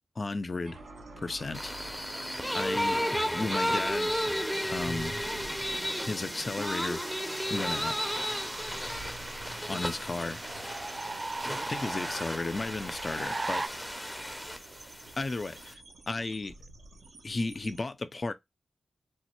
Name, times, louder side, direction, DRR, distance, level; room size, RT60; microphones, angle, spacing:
voice 1, 0.2-0.8 1.2-1.7 2.5-4.2 4.6-5.2 6.1-7.0 7.5-8.0 9.7-10.4 11.7-13.6 15.2-15.8 16.1-16.5 17.2-18.3, left 3 dB, 45° left, 0.5 m, -34 dB
sound 1, 0.6-17.8, right 3 dB, 85° right, 0.9 m, -48 dB
sound 2, 1.5-15.7, equal, 5° left, 0.6 m, -34 dB
sound 3, 6.6-13.7, right 3 dB, 40° right, 0.4 m, -40 dB
3.4 x 2.1 x 3.1 m
cardioid pair, 45°, 0 cm